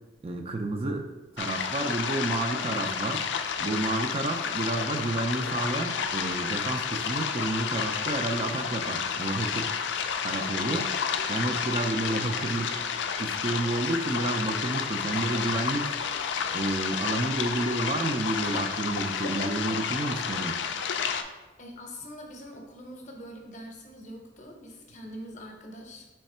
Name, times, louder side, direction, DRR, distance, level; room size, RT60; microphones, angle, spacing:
voice 1, 0.2-1.1 1.4-3.2 3.6-9.8 10.2-10.9 11.3-12.8 13.2-15.9 16.5-20.6, right 2 dB, 35° right, 4 dB, 0.3 m, -30 dB
sound 1, 1.4-21.2, left 7 dB, 85° left, 0.3 m, -31 dB
voice 2, 21.6-26.0, equal, 40° left, 1 dB, 0.7 m, -43 dB
3.6 x 3.2 x 4.2 m, 1.2 s
head